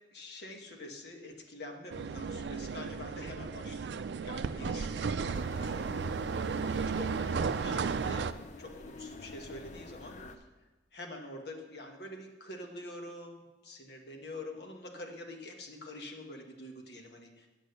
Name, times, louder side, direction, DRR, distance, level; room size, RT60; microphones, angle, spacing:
voice 1, 0.1-3.9 4.2-6.4 6.6-8.3 8.6-10.5 10.9-17.5, left 1 dB, 65° left, 3 dB, 1.4 m, -46 dB
sound 1, 1.9-8.3, right 5 dB, 75° right, 0.4 m, -34 dB
sound 2, 5.3-10.4, left 3 dB, 40° left, 0.5 m, -48 dB
8.8 x 7.5 x 6.6 m, 1.2 s
head